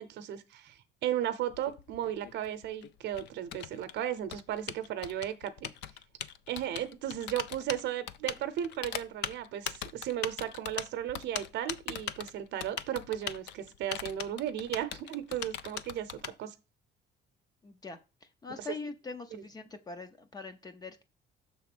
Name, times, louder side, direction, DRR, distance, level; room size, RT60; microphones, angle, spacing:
voice 1, 0.0-5.7 6.5-16.5 18.6-18.7 19.3-19.4, right 11 dB, 65° right, 11 dB, 0.7 m, -35 dB
Typing, 1.5-16.3, left 10 dB, 70° left, 0.5 m, -40 dB
voice 2, 17.6-18.0 18.4-21.0, left 4 dB, 20° left, 9 dB, 0.5 m, -42 dB
6.6 x 3.6 x 6.0 m, 0.29 s
cardioid pair, 175°, 19 cm